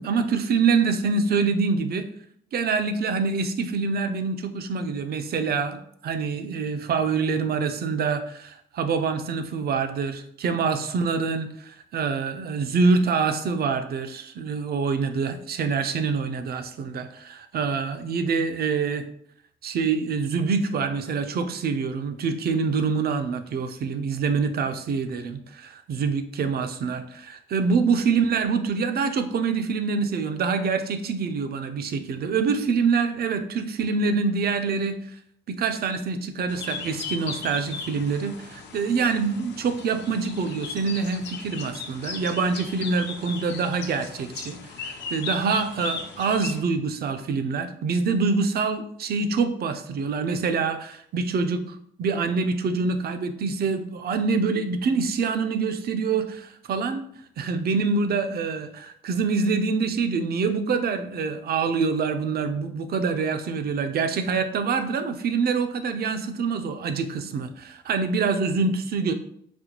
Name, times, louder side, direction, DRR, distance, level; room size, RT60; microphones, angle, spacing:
voice 1, 0.0-2.1 2.5-19.0 19.6-35.0 35.5-57.0 57.4-69.1, right 5 dB, 50° right, 9 dB, 0.5 m, -25 dB
sound 1, 36.5-46.6, left 5 dB, 60° left, 0.6 m, -37 dB
4.2 x 2.2 x 2.9 m, 0.67 s
cardioid pair, 90°, 20 cm